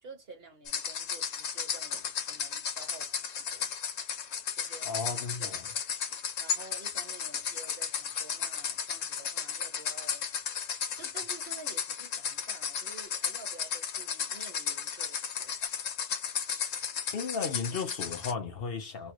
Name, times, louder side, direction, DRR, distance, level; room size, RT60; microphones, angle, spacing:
voice 1, 0.0-3.7 4.6-5.8 6.4-10.2 11.0-15.5, right 3 dB, 50° right, 1.6 m, -50 dB
sound 1, 0.7-18.3, left 7 dB, 85° left, 1.2 m, -34 dB
voice 2, 4.9-5.6 17.1-19.1, left 5 dB, 55° left, 0.9 m, -34 dB
3.2 x 2.3 x 2.9 m
omnidirectional pair, 1.3 m